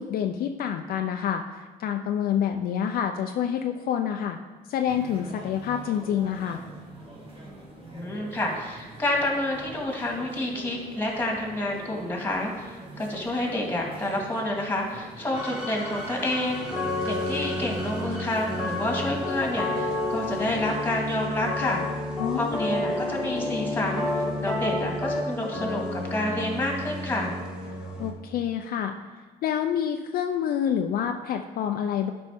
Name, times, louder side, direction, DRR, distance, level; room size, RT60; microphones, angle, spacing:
voice 1, 0.0-4.4 4.7-6.6 22.2-22.5 28.0-28.9 29.4-32.1, left 9 dB, 60° left, 5 dB, 0.5 m, -27 dB
sound 1, 4.9-20.7, right 2 dB, 30° right, 1.7 m, -44 dB
voice 2, 7.9-16.7 17.0-21.8 22.4-24.1 24.4-27.4, left 1 dB, 10° left, 0 dB, 2.0 m, -29 dB
sound 2, 15.3-28.1, left 1 dB, 5° right, 1.9 m, -30 dB
11.5 x 5.2 x 3.6 m, 1.3 s
cardioid pair, 110°, 17 cm